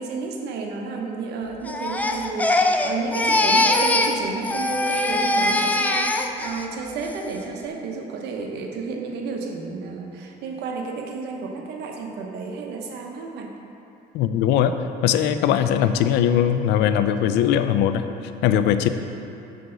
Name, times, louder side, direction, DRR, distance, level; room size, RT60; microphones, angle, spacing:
voice 1, 0.0-13.5, right 4 dB, 80° right, 2 dB, 0.9 m, -31 dB
Crying sobbing, 1.7-4.2 4.4-6.6 7.0-7.4, left 2 dB, 10° left, 0.4 m, -22 dB
voice 2, 14.1-14.7 15.0-18.1 18.4-18.9, left 9 dB, 85° left, 10 dB, 0.4 m, -20 dB
6.7 x 6.3 x 3.9 m, 2.7 s
cardioid pair, 110°, 17 cm